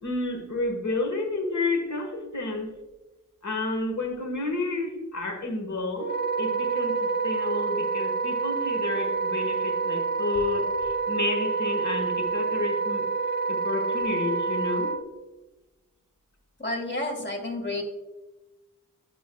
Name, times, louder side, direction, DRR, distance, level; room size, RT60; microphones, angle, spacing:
voice 1, 0.0-2.7 3.4-13.1 13.5-15.0, left 2 dB, 55° left, 4 dB, 1.5 m, -30 dB
Wind instrument woodwind instrument, 6.0-15.0, right 4 dB, 30° right, 0.6 m, -28 dB
voice 2, 16.6-17.8, left 2 dB, 35° left, 3 dB, 1.7 m, -30 dB
10.5 x 4.6 x 2.3 m, 1.1 s
cardioid pair, 50°, 34 cm